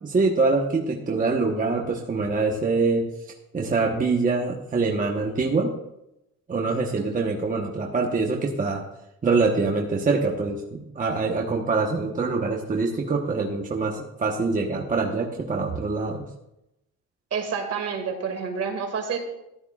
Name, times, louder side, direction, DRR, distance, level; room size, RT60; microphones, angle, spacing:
voice 1, 0.0-3.0 3.5-5.7 6.5-8.8 9.2-16.2, right 3 dB, 25° right, -1 dB, 1.2 m, -24 dB
voice 2, 17.3-19.2, right 6 dB, 55° right, 4 dB, 2.3 m, -29 dB
14.0 x 12.5 x 2.5 m, 0.86 s
cardioid pair, 130°, 30 cm